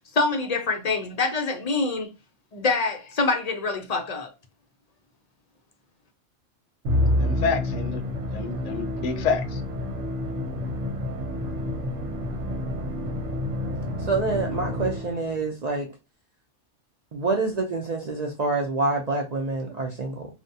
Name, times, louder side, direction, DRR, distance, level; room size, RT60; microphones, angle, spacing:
voice 1, 0.1-2.1 2.5-4.3, left 3 dB, 50° left, 0.5 m, -25 dB
Musical instrument, 6.8-15.4, left 1 dB, 80° right, 1.0 m, -28 dB
voice 2, 7.2-8.0 8.3-9.6, left 5 dB, 85° left, 0.9 m, -28 dB
voice 3, 14.1-15.9 17.1-20.3, right 3 dB, 50° right, 0.5 m, -27 dB
3.4 x 2.2 x 2.6 m
omnidirectional pair, 1.2 m